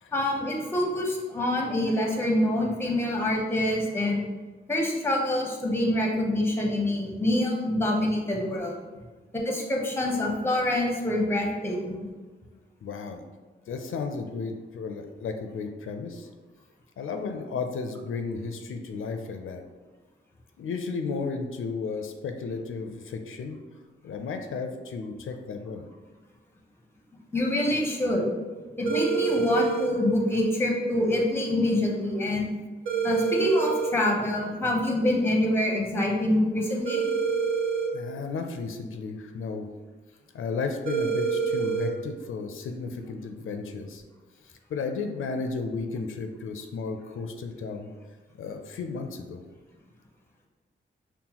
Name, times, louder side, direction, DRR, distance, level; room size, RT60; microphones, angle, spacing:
voice 1, 0.1-4.2 4.7-8.7 9.5-12.1 27.3-28.3 28.8-32.5 33.0-37.0, left 1 dB, 10° left, -1 dB, 0.6 m, -26 dB
voice 2, 12.8-13.2 13.7-16.3 17.0-19.6 20.6-23.6 24.0-25.9 37.9-39.7 40.3-44.0 44.4-47.9 48.4-49.4, left 4 dB, 80° left, 5 dB, 0.4 m, -34 dB
sound 1, 28.9-29.9 32.9-33.9 36.9-37.9 40.9-41.9, right 5 dB, 80° right, 1.0 m, -26 dB
5.5 x 2.2 x 2.9 m, 1.3 s
wide cardioid pair, 135°, 21 cm